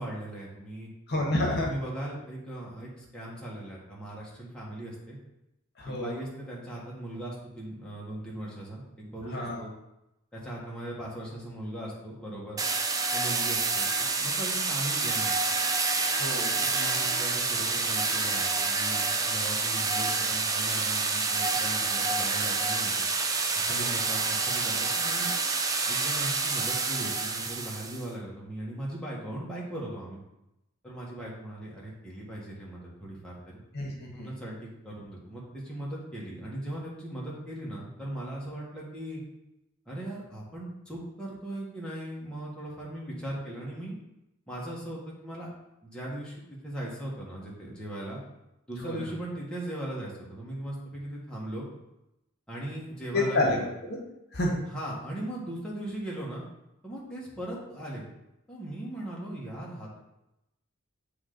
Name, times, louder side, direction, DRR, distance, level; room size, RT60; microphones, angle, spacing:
voice 1, 0.0-0.9 1.6-5.2 5.8-9.7 10.3-12.6 13.1-13.9 14.2-15.4 16.6-23.1 23.5-25.3 25.9-30.2 30.8-33.6 34.1-39.2 39.9-44.0 44.5-45.5 45.8-48.2 48.7-51.7 52.5-53.7 54.7-56.4 56.8-58.1 58.5-60.0, right 1 dB, 5° left, -6 dB, 1.3 m, -38 dB
voice 2, 1.1-1.7 5.8-6.1 9.3-9.6 16.1-16.6 23.6-24.0 33.7-34.3 48.8-49.0 53.1-53.6 54.3-54.6, left 2 dB, 50° left, -1 dB, 1.2 m, -29 dB
sound 1, 12.6-28.1, right 4 dB, 15° right, 0.4 m, -28 dB
8.4 x 3.3 x 3.9 m, 0.90 s
head